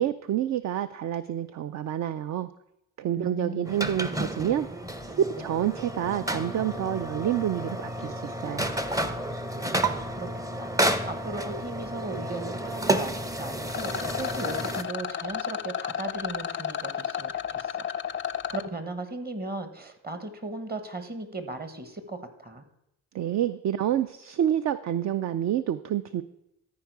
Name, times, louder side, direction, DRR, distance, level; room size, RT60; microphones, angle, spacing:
voice 1, 0.0-2.5 3.0-4.7 5.1-8.7 23.1-26.2, right 11 dB, 50° right, 12 dB, 0.4 m, -28 dB
voice 2, 3.2-3.8 9.8-10.3 10.6-18.2 18.5-22.6, right 2 dB, 25° right, 9 dB, 1.2 m, -37 dB
sound 1, 3.7-14.8, right 1 dB, 10° right, 0.6 m, -31 dB
Rattle, 13.7-18.7, left 9 dB, 35° left, 0.4 m, -32 dB
13.5 x 4.7 x 4.7 m, 0.83 s
cardioid pair, 85°, 36 cm